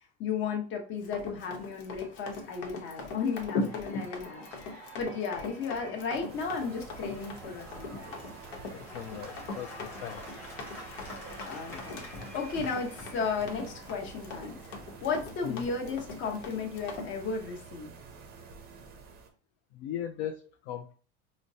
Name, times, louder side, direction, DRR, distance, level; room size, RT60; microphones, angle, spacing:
voice 1, 0.2-8.1 10.8-11.0 11.5-12.1 12.3-14.6 15.0-17.9, left 5 dB, 40° left, 2 dB, 0.9 m, -34 dB
Run, 1.0-17.1, left 3 dB, 85° left, 0.9 m, -40 dB
Cheering / Applause / Crowd, 1.3-15.9, left 1 dB, 5° left, 1.0 m, -50 dB
sound 1, 6.3-19.3, right 5 dB, 30° right, 0.5 m, -49 dB
voice 2, 8.7-10.2 15.4-15.6 19.7-20.9, left 10 dB, 55° left, 6 dB, 0.4 m, -38 dB
4.9 x 2.1 x 2.7 m, 0.39 s
cardioid pair, 155°, 32 cm